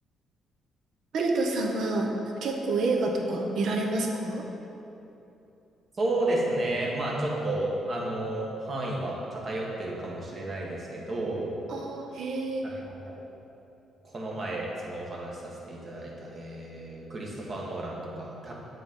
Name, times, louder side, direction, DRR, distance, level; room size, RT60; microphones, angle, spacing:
voice 1, 1.1-2.1 2.4-4.4 11.7-12.6, right 2 dB, 70° right, 1 dB, 0.8 m, -28 dB
voice 2, 6.0-11.6 12.6-13.2 14.0-18.5, right 1 dB, 45° right, -3 dB, 1.3 m, -32 dB
8.0 x 3.9 x 3.7 m, 2.9 s
cardioid pair, 90°, 0 cm